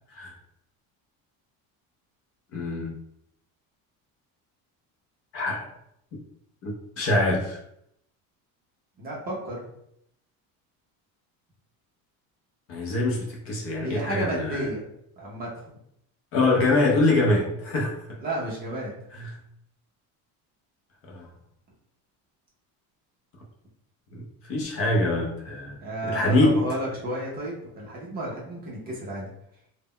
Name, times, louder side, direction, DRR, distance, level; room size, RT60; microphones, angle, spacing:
voice 1, 2.5-2.9 5.3-5.7 6.6-7.6 12.7-14.7 16.3-18.0 19.2-19.3 21.1-21.3 24.1-24.2 24.5-25.8 26.0-26.6, left 2 dB, 40° left, -1 dB, 0.4 m, -24 dB
voice 2, 9.0-9.6 13.8-14.9 15.2-15.7 18.2-18.9 25.8-29.3, right 1 dB, 25° right, -4 dB, 0.4 m, -32 dB
2.0 x 2.0 x 3.6 m, 0.74 s
cardioid pair, 170°, 38 cm